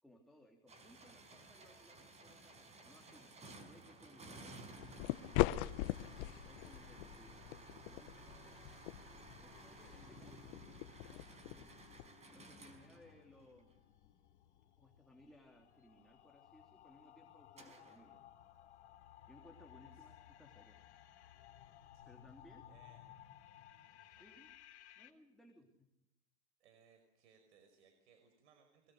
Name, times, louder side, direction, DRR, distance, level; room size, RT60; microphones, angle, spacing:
voice 1, 0.0-5.8 6.1-8.8 9.4-11.7 12.3-13.7 14.8-18.2 19.3-20.7 22.0-22.7 24.2-24.5 25.0-25.9, left 1 dB, ahead, 1 dB, 3.1 m, -64 dB
sound 1, 0.7-13.7 17.6-18.0, right 2 dB, 20° right, 5.2 m, -56 dB
sound 2, 4.8-12.1, left 17 dB, 50° left, 1.1 m, -41 dB
sound 3, 9.5-25.1, left 11 dB, 80° left, 3.3 m, -60 dB
voice 2, 22.7-23.1 24.0-24.4 26.6-28.9, right 6 dB, 80° right, 6 dB, 5.5 m, -68 dB
26.0 x 23.0 x 6.5 m, 0.86 s
supercardioid pair, 130°, 34 cm